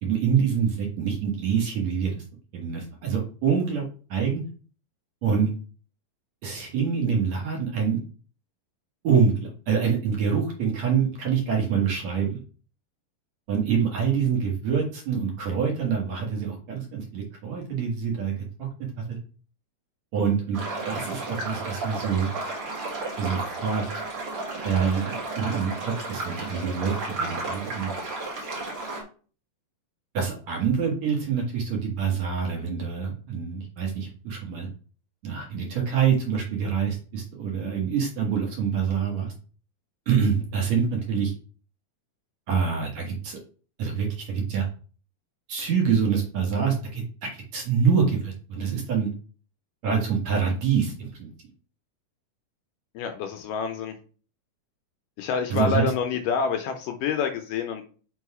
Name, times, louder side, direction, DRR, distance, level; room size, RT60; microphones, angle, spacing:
voice 1, 0.0-2.2 2.5-3.8 4.1-4.4 5.2-5.5 6.4-8.0 9.0-12.4 13.5-18.7 19.0-19.2 20.1-20.6 20.9-22.3 23.2-23.8 24.6-27.9 30.1-34.7 35.2-39.3 40.1-41.3 42.5-43.4 43.8-44.7 45.5-49.1 49.8-51.3 55.5-55.9, right 6 dB, 60° right, 0 dB, 2.2 m, -26 dB
sound 1, 20.5-29.0, right 2 dB, 45° right, 2.2 m, -33 dB
voice 2, 53.0-54.0 55.2-57.8, left 6 dB, 75° left, 6 dB, 2.0 m, -27 dB
5.5 x 3.9 x 4.7 m, 0.39 s
omnidirectional pair, 4.2 m